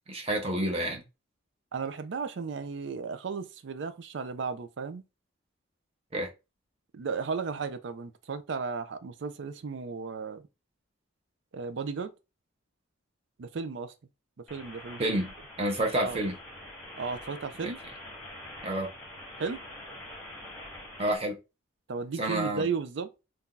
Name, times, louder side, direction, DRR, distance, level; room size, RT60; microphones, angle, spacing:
voice 1, 0.1-1.0 6.1-6.3 15.0-16.4 17.6-17.7 18.6-18.9 21.0-21.4 22.2-22.7, right 1 dB, 30° right, 0.8 m, -29 dB
voice 2, 1.7-5.0 6.9-10.4 11.5-12.1 13.4-13.9 14.5-15.0 16.0-16.2 17.0-17.8 19.4-19.6 21.9-23.1, right 5 dB, 60° right, 0.4 m, -34 dB
sound 1, 14.5-21.2, left 1 dB, 5° left, 1.1 m, -45 dB
2.7 x 2.3 x 3.7 m
head